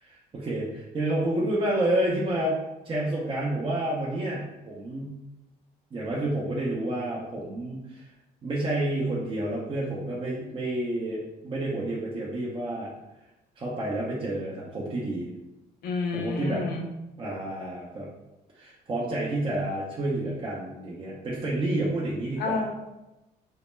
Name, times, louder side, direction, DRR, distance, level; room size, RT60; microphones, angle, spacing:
voice 1, 0.0-2.6 2.8-5.2 5.9-8.1 8.4-12.9 13.6-15.3 16.1-16.7 17.2-18.1 18.5-22.6, right 1 dB, 30° right, -5 dB, 0.5 m, -29 dB
voice 2, 15.8-16.9 22.4-22.7, left 3 dB, 65° left, 3 dB, 0.5 m, -29 dB
2.1 x 2.1 x 3.0 m, 0.97 s
cardioid pair, 110°, 17 cm